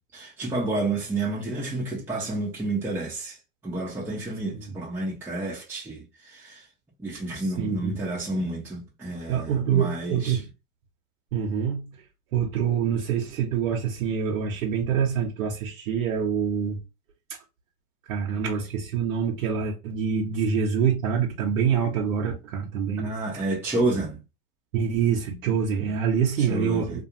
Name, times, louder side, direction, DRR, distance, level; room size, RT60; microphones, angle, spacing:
voice 1, 0.1-3.4 3.6-6.7 7.0-10.4 23.0-24.2 26.4-27.0, right 2 dB, 5° right, 0.7 m, -30 dB
voice 2, 7.6-8.0 9.3-10.5 11.3-11.9 12.3-16.8 18.1-23.1 24.7-27.0, right 7 dB, 65° right, 0.9 m, -25 dB
2.4 x 2.4 x 2.9 m
hypercardioid pair, 110°, 44 cm